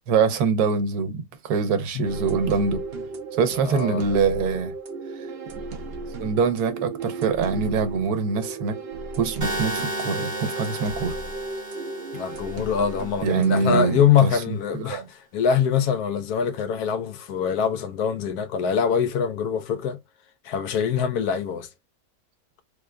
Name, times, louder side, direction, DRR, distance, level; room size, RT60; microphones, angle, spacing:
voice 1, 0.1-2.8 3.4-4.7 6.2-8.8 9.2-11.1 13.2-15.1, right 5 dB, 85° right, 1.3 m, -24 dB
sound 1, 2.0-14.0, right 3 dB, 50° right, 0.8 m, -35 dB
voice 2, 3.6-4.0 12.1-20.0 20.4-21.7, left 7 dB, 90° left, 1.2 m, -24 dB
sound 2, 9.4-13.4, right 1 dB, 15° right, 0.7 m, -33 dB
3.5 x 2.2 x 3.6 m
omnidirectional pair, 1.6 m